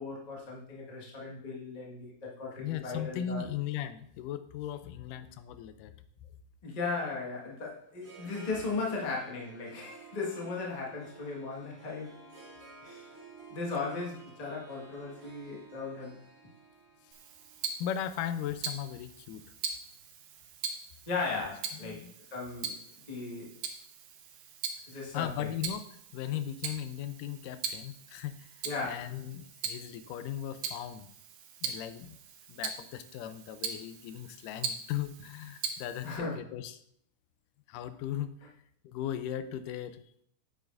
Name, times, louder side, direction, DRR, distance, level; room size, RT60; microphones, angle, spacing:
voice 1, 0.0-3.5 6.6-12.1 12.8-13.1 13.5-16.2 21.1-22.7 23.1-23.5 24.9-25.5 28.6-29.0 36.0-36.4, left 4 dB, 65° left, -3 dB, 0.4 m, -37 dB
voice 2, 2.6-5.9 17.8-19.4 21.8-22.1 24.9-25.8 26.1-31.1 31.6-32.2 32.5-36.8 37.7-38.5 38.8-40.1, left 10 dB, 90° left, 11 dB, 2.2 m, -37 dB
Harp, 7.3-19.5, right 4 dB, 50° right, 2.7 m, -54 dB
Tick-tock, 17.1-36.2, right 6 dB, 85° right, 2.4 m, -41 dB
8.4 x 7.9 x 2.5 m, 0.68 s
omnidirectional pair, 3.6 m